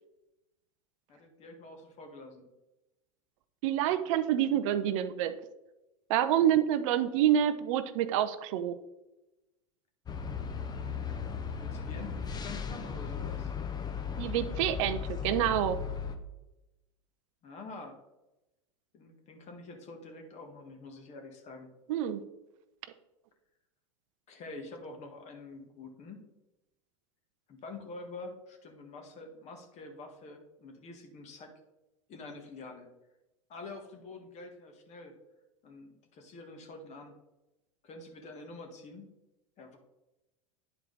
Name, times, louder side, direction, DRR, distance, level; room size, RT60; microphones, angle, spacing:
voice 1, 1.1-2.4 11.5-13.5 17.4-18.0 18.9-21.7 24.3-26.3 27.5-31.5 32.1-32.9 33.5-35.1 35.6-37.1 37.8-39.1 39.6-39.8, left 3 dB, 40° left, 4 dB, 1.8 m, -47 dB
voice 2, 3.6-5.3 6.1-8.8 14.2-15.8 21.9-22.2, right 10 dB, 65° right, 11 dB, 0.6 m, -27 dB
sound 1, 10.1-16.2, left 7 dB, 20° left, 0.9 m, -36 dB
10.0 x 4.5 x 4.1 m, 0.98 s
hypercardioid pair, 100°, 18 cm